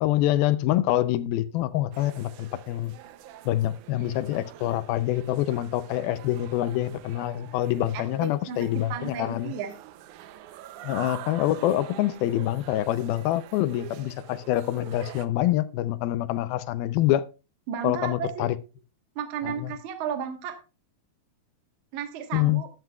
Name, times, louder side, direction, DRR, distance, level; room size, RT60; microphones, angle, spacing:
voice 1, 0.0-2.9 3.5-9.5 10.8-17.3 17.8-18.6 19.4-19.7 22.3-22.6, left 14 dB, 80° left, 2.4 m, -26 dB
sound 1, 1.9-15.3, right 12 dB, 80° right, 1.7 m, -45 dB
voice 2, 7.9-9.8 17.7-18.5 19.2-20.6 21.9-22.7, right 7 dB, 60° right, 2.4 m, -33 dB
13.5 x 11.0 x 2.3 m
omnidirectional pair, 4.4 m